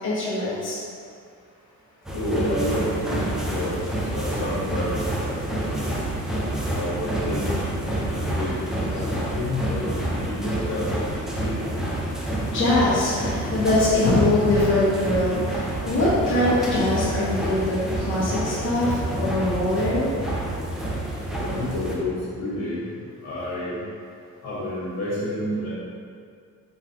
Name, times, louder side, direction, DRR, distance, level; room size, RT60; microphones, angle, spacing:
voice 1, 0.0-0.8 12.5-20.1, left 1 dB, 40° left, -11 dB, 1.2 m, -22 dB
sound 1, 2.0-21.9, right 1 dB, ahead, 0.4 m, -28 dB
voice 2, 2.1-3.7 4.1-5.9 6.7-11.8 21.4-22.9 23.2-23.8 24.4-25.7, left 1 dB, 60° left, -8 dB, 1.5 m, -30 dB
4.6 x 3.8 x 2.9 m, 2.3 s
cardioid pair, 170°, 31 cm